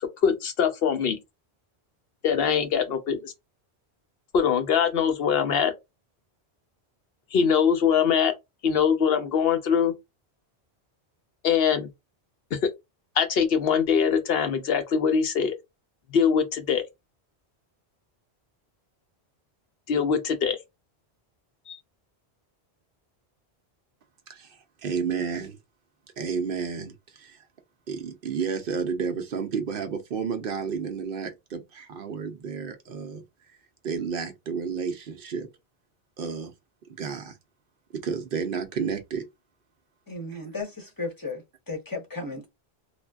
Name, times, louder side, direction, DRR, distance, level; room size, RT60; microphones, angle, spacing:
voice 1, 0.0-1.2 2.2-3.3 4.3-5.7 7.3-8.3 8.6-9.9 11.4-11.9 12.5-12.7 13.2-15.6 16.1-16.8 19.9-20.6 21.7-21.8, left 7 dB, 70° left, 0.8 m, -23 dB
voice 2, 24.3-25.6 26.2-27.4 27.9-33.2 33.8-35.5 36.2-36.5 36.9-37.4 37.9-39.2 40.4-40.6, right 6 dB, 65° right, 0.7 m, -31 dB
voice 3, 40.1-41.4 41.7-42.5, left 3 dB, 20° left, 0.9 m, -34 dB
3.2 x 2.2 x 2.3 m
omnidirectional pair, 1.1 m